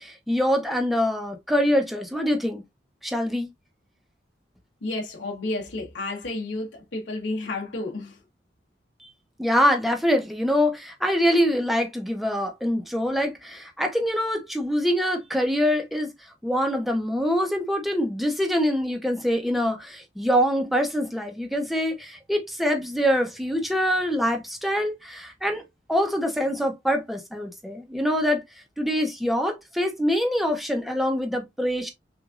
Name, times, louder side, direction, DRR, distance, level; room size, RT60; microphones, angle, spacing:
voice 1, 0.0-2.6 3.0-3.5 9.4-16.1 16.4-25.6 25.9-28.4 28.8-31.9, equal, ahead, 0.8 m, -24 dB
voice 2, 4.8-8.2, left 2 dB, 75° left, 1.2 m, -31 dB
6.1 x 2.6 x 2.5 m
head